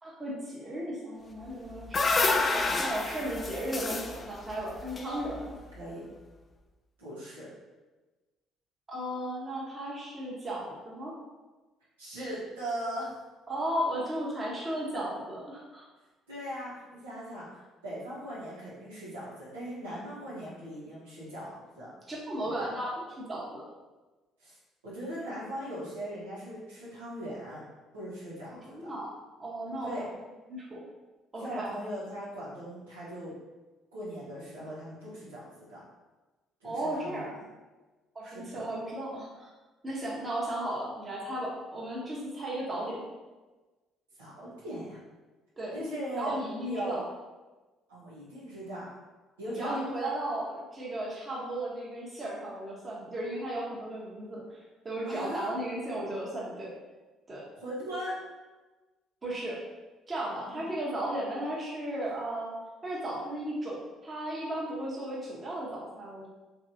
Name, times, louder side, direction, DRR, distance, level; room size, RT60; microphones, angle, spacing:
voice 1, 0.0-2.4 2.8-5.6 8.9-11.1 13.5-15.8 22.1-23.6 28.6-29.1 29.4-30.1 30.5-30.8 31.3-31.7 36.6-37.3 38.1-39.5 39.8-43.1 45.6-45.8 46.2-47.0 49.6-56.7 57.3-57.4 59.2-59.6 60.1-62.5 62.8-66.3, right 1 dB, 30° right, -5 dB, 1.0 m, -35 dB
sound 1, 1.4-5.7, left 3 dB, 35° left, 0.3 m, -29 dB
voice 2, 7.0-7.5 12.0-13.1 16.3-21.9 22.4-22.7 24.4-24.6 24.8-27.6 27.9-28.9 29.8-30.0 31.4-33.3 33.9-35.8 36.6-36.7 37.0-37.2 38.2-38.6 44.2-45.0 45.7-46.3 46.6-47.0 47.9-48.9 49.4-49.8 55.0-55.5 57.6-58.2 60.5-60.6 62.0-62.1, equal, 85° right, -9 dB, 1.0 m, -39 dB
3.1 x 2.6 x 2.6 m, 1.2 s
hypercardioid pair, 50°, 0 cm